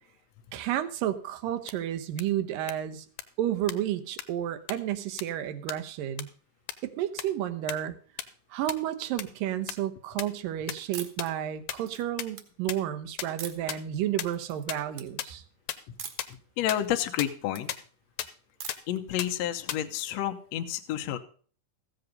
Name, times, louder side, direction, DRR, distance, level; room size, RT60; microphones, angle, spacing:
voice 1, 0.5-3.1 3.4-6.3 6.8-8.0 8.5-15.4, right 11 dB, 85° right, 9 dB, 2.7 m, -31 dB
sound 1, 1.7-1.8 2.2-2.3 2.7-2.8 3.2-3.3 3.7-3.8 4.2-4.3 4.7-4.8 5.2-5.3 5.7-5.8 6.2-6.3 6.7-6.8 7.2-7.3 7.7-7.8 8.2-8.3 8.7-8.8 9.2-9.3 9.7-9.8 10.2-10.3 10.7-10.8 11.2-11.3 11.7-11.8 12.2-12.3 12.7-12.8 13.2-13.3 13.7-13.8 14.2-14.3 14.7-14.8 15.2-15.3 15.7-15.8 16.2-16.3 16.7-16.8 17.2-17.3 17.7-17.8 18.2-18.3 18.7-18.8 19.2-19.3 19.7-19.8, left 12 dB, 90° left, 2.5 m, -32 dB
sound 2, 10.9-11.3 11.8-12.4 13.4-13.8 14.3-14.6 14.9-15.1 16.0-16.3 16.7-17.6 18.6-19.0, right 8 dB, 55° right, 1.8 m, -42 dB
voice 2, 16.6-17.7 18.9-21.2, left 11 dB, 65° left, 6 dB, 1.9 m, -30 dB
15.0 x 7.9 x 5.3 m, 0.43 s
omnidirectional pair, 3.8 m